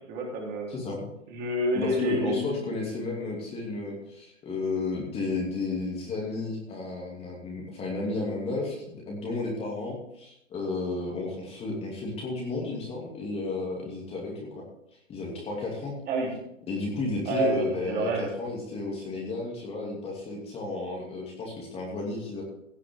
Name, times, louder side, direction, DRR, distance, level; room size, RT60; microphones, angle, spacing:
voice 1, 0.1-0.7 1.3-2.6 16.1-16.3 17.3-18.3, right 1 dB, 25° right, -2 dB, 3.9 m, -28 dB
voice 2, 0.7-1.1 1.7-14.6 15.1-15.9 16.7-22.4, left 3 dB, 15° left, -2 dB, 2.7 m, -33 dB
17.0 x 9.8 x 3.8 m, 0.79 s
figure-of-eight pair, 130°, 38 cm